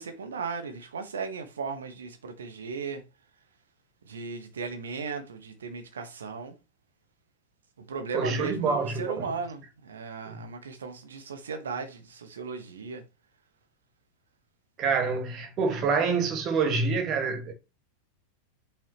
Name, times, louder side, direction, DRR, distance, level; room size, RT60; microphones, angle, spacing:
voice 1, 0.0-3.0 4.0-6.5 7.8-13.0, right 5 dB, 65° right, 1.3 m, -36 dB
voice 2, 8.1-9.3 10.3-10.4 14.8-17.5, right 4 dB, 35° right, 1.8 m, -27 dB
8.6 x 5.8 x 3.0 m
figure-of-eight pair, 90°, 0 cm